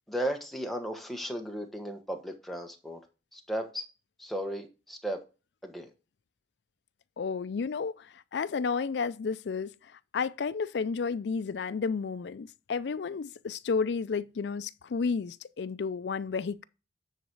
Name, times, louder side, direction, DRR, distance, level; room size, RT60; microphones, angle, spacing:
voice 1, 0.1-3.0 3.3-3.8 4.2-5.2 5.6-5.9, equal, ahead, 1.1 m, -35 dB
voice 2, 7.2-9.7 10.1-16.7, left 5 dB, 70° left, 0.4 m, -32 dB
9.3 x 4.0 x 4.6 m
head